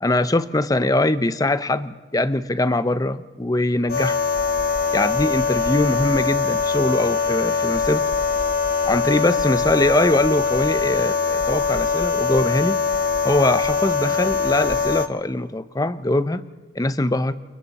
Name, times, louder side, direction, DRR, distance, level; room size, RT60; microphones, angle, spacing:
voice 1, 0.0-4.2 4.9-8.0 8.8-12.8 13.2-16.4 16.8-17.3, left 2 dB, 20° left, 13 dB, 0.7 m, -22 dB
sound 1, 3.9-15.1, left 5 dB, 50° left, 0.9 m, -22 dB
29.0 x 28.5 x 4.2 m, 1.3 s
head